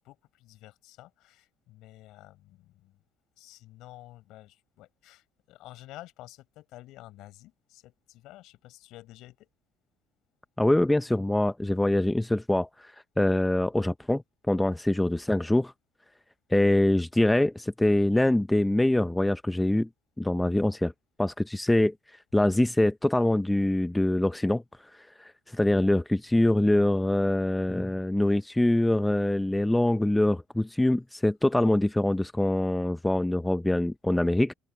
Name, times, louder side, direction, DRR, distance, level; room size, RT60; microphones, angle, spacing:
voice 1, 0.0-3.0 3.4-9.5, left 16 dB, 70° left, 6.0 m, -50 dB
voice 2, 10.6-12.7 13.2-15.7 16.5-19.9 20.2-20.9 21.2-21.9 22.3-24.6 25.2-34.5, left 1 dB, 5° left, 0.5 m, -24 dB
open air
cardioid pair, 135°, 0 cm